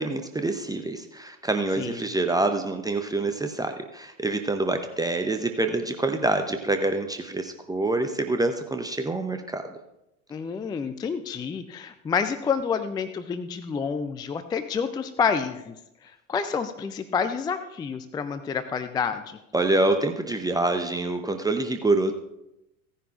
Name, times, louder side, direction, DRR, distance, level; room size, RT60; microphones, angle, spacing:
voice 1, 0.0-9.8 19.5-22.1, right 2 dB, 10° right, 6 dB, 0.7 m, -26 dB
voice 2, 1.8-2.1 10.3-15.7 16.0-19.4, left 6 dB, 10° left, 10 dB, 0.4 m, -29 dB
16.5 x 10.0 x 2.5 m, 0.89 s
figure-of-eight pair, 75°, 42 cm